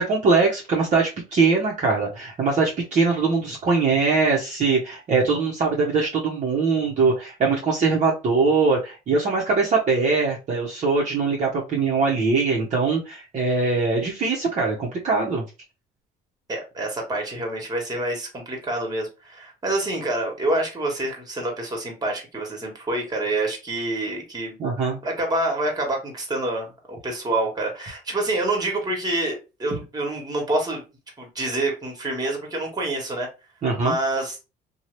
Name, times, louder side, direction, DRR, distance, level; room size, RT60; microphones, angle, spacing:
voice 1, 0.0-15.4 24.6-25.0 33.6-33.9, right 4 dB, 45° right, -3 dB, 0.9 m, -22 dB
voice 2, 16.5-24.6 25.0-30.8 31.2-33.3 33.8-34.4, right 2 dB, 25° right, 1 dB, 1.4 m, -27 dB
2.8 x 2.3 x 3.1 m, 0.28 s
cardioid pair, 110°, 17 cm